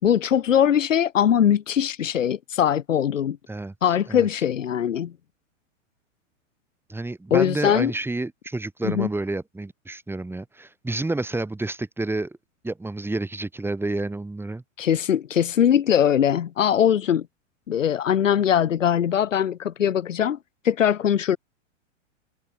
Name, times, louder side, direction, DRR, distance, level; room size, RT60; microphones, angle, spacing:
voice 1, 0.0-3.4 3.8-5.1 7.3-7.9 8.8-9.1 14.8-17.3 17.7-20.4 20.6-21.4, left 9 dB, 85° left, 4.5 m, -21 dB
voice 2, 6.9-12.4 12.6-14.6, right 2 dB, 5° right, 7.9 m, -29 dB
hypercardioid pair, 125°, 37 cm